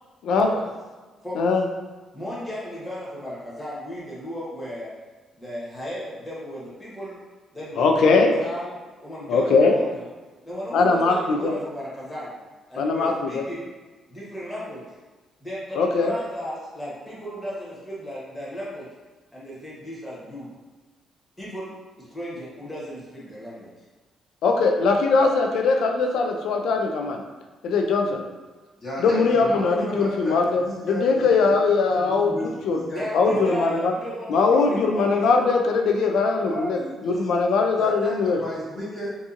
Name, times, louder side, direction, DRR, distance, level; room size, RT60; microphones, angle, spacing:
voice 1, 2.1-4.9 5.3-7.2 7.5-8.7 9.0-10.0 10.4-12.4 12.7-13.7 14.1-14.8 15.4-18.9 19.3-20.5 21.4-21.7 22.1-23.7 32.9-35.5 37.0-37.3, equal, 10° left, -8 dB, 1.1 m, -35 dB
voice 2, 7.8-8.3 9.3-9.7 10.7-11.5 12.8-13.4 15.8-16.1 24.4-27.2 27.6-28.2 29.0-32.3 32.6-32.8 33.1-33.9 34.3-36.8 37.0-38.4, left 4 dB, 75° left, 3 dB, 0.3 m, -21 dB
voice 3, 28.8-31.5 31.9-33.5 36.4-37.3 37.8-39.1, equal, 40° left, -8 dB, 1.0 m, -33 dB
2.6 x 2.4 x 2.5 m, 1.3 s
cardioid pair, 90°, 0 cm